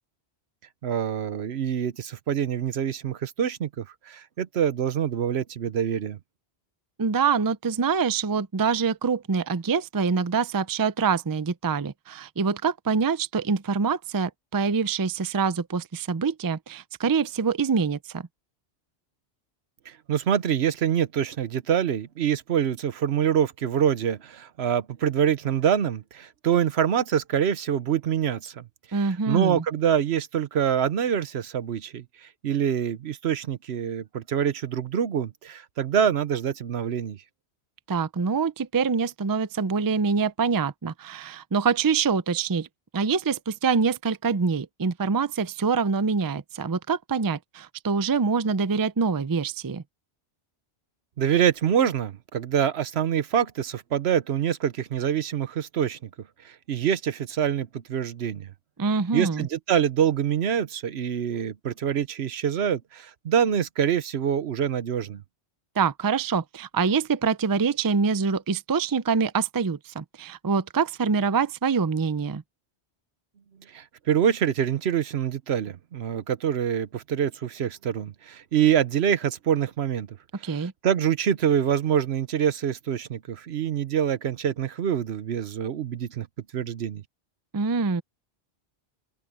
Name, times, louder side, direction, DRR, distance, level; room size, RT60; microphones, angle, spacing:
voice 1, 0.8-6.2 19.9-28.6 29.3-37.2 51.2-56.1 56.4-58.5 59.1-65.2 73.7-80.1 80.5-86.3 86.5-87.0, right 9 dB, 75° right, 1.1 m, -25 dB
voice 2, 7.0-18.3 28.9-29.6 37.9-42.7 42.9-49.8 58.8-59.5 65.8-72.4 80.4-80.7 87.5-88.0, right 5 dB, 30° right, 0.4 m, -25 dB
open air
omnidirectional pair, 1.1 m